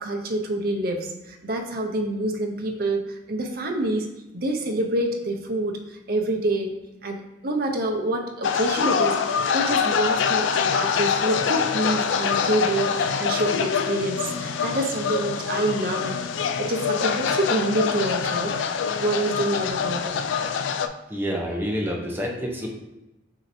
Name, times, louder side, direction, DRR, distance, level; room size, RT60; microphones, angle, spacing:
voice 1, 0.0-4.1 4.3-6.7 7.0-16.3 16.6-18.5 19.0-20.2, right 1 dB, 50° right, 2 dB, 0.6 m, -27 dB
sound 1, 8.4-20.9, left 6 dB, 80° left, 0.3 m, -25 dB
voice 2, 21.1-22.7, equal, 10° right, -1 dB, 0.7 m, -28 dB
6.3 x 2.8 x 2.6 m, 0.99 s
head